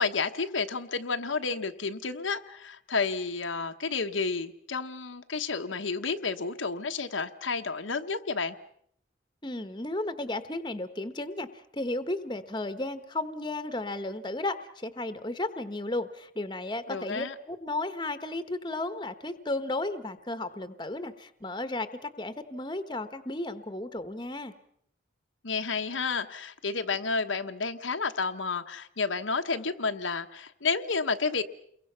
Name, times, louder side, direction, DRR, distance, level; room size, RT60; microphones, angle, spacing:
voice 1, 0.0-8.5 16.9-17.3 25.4-31.4, left 4 dB, 90° left, 6 dB, 1.2 m, -31 dB
voice 2, 9.4-24.5, left 2 dB, 25° left, 10 dB, 1.1 m, -34 dB
29.5 x 22.5 x 5.7 m, 0.67 s
head